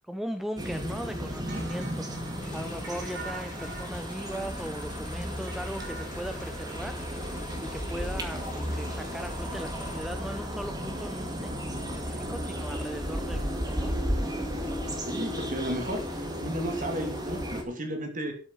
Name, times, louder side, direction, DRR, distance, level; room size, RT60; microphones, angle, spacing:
voice 1, 0.0-7.0 7.3-14.0, equal, ahead, 7 dB, 0.6 m, -39 dB
sound 1, 0.6-17.6, equal, 20° right, 2.1 m, -34 dB
sound 2, 1.5-7.6, right 3 dB, 55° right, 2.9 m, -46 dB
Motorcycle / Engine, 2.4-10.0, left 3 dB, 35° left, 1.6 m, -48 dB
voice 2, 15.1-18.3, right 1 dB, 35° right, 4 dB, 2.8 m, -33 dB
13.0 x 7.1 x 5.7 m, 0.42 s
head